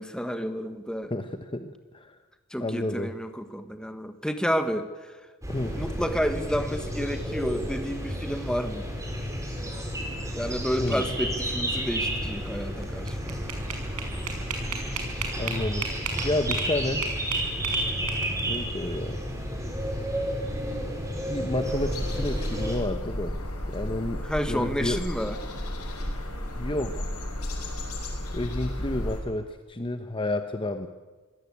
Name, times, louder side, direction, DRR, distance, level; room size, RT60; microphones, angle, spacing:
voice 1, 0.0-1.1 2.5-5.2 5.7-8.9 10.3-13.5 24.2-25.4, equal, 5° left, 8 dB, 1.4 m, -30 dB
voice 2, 1.1-2.2 2.6-3.1 5.5-5.8 10.8-11.0 15.3-15.9 16.2-17.0 18.5-19.2 21.3-23.4 23.7-25.0 26.6-27.1 28.3-30.9, left 1 dB, 25° left, 8 dB, 0.9 m, -30 dB
sound 1, 5.4-22.8, equal, 15° right, 4.5 m, -31 dB
sound 2, 12.8-16.7 17.0-18.6, right 6 dB, 90° right, 5.5 m, -33 dB
sound 3, 21.6-29.2, left 1 dB, 85° left, 5.9 m, -33 dB
25.0 x 17.5 x 8.6 m, 1.3 s
head